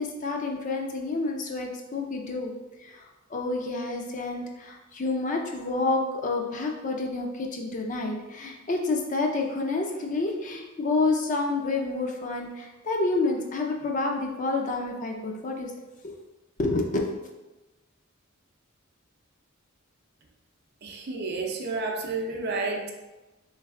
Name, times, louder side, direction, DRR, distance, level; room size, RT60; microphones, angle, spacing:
voice 1, 0.0-2.5 2.8-15.7 16.6-17.2, left 3 dB, 35° left, 2 dB, 0.5 m, -29 dB
voice 2, 20.8-22.9, right 3 dB, 50° right, 2 dB, 0.6 m, -30 dB
3.3 x 3.2 x 3.6 m, 1.1 s
head